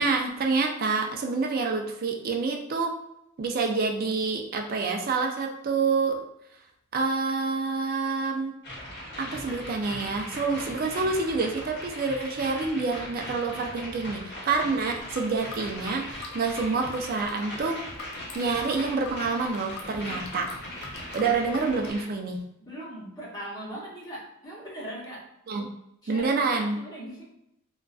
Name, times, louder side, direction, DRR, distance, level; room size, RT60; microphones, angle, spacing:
voice 1, 0.0-2.9 3.4-6.2 6.9-8.5 9.2-17.8 18.3-20.5 21.1-22.4 25.5-25.7 26.1-26.8, right 4 dB, 45° right, 3 dB, 0.4 m, -27 dB
sound 1, 8.6-22.1, left 1 dB, 50° left, 0.9 m, -39 dB
sound 2, 15.0-21.9, left 3 dB, 70° left, 0.4 m, -44 dB
voice 2, 22.7-25.3 26.0-27.3, right 1 dB, 20° left, -7 dB, 0.9 m, -40 dB
2.4 x 2.2 x 2.3 m, 0.83 s
head